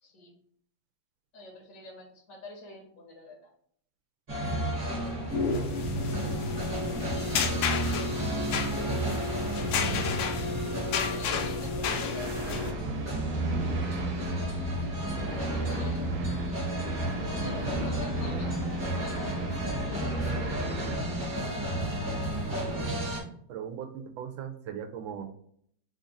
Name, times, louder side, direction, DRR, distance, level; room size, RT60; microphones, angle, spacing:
voice 1, 0.0-0.3 1.3-3.5 10.9-12.9 15.3-16.0 17.3-19.3 19.9-21.0, left 2 dB, 55° left, 0 dB, 1.0 m, -47 dB
sound 1, 4.3-23.2, right 1 dB, 35° right, 1.2 m, -32 dB
sound 2, 5.2-12.7, left 5 dB, 75° left, 1.2 m, -32 dB
sound 3, 12.2-21.0, right 3 dB, 60° right, 1.3 m, -38 dB
voice 2, 23.5-25.3, right 8 dB, 85° right, 7 dB, 1.3 m, -38 dB
3.5 x 2.5 x 4.0 m, 0.64 s
omnidirectional pair, 2.1 m